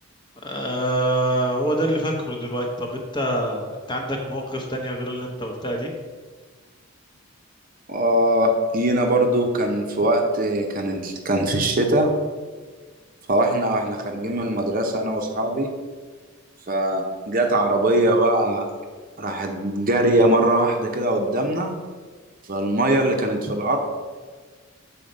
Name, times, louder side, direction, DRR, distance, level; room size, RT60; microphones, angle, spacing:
voice 1, 0.4-5.9, right 1 dB, 20° left, 1 dB, 1.0 m, -25 dB
voice 2, 7.9-12.1 13.3-15.7 16.7-18.7 19.2-21.7 22.5-23.8, right 1 dB, 40° right, 3 dB, 0.8 m, -21 dB
7.4 x 4.4 x 5.2 m, 1.4 s
head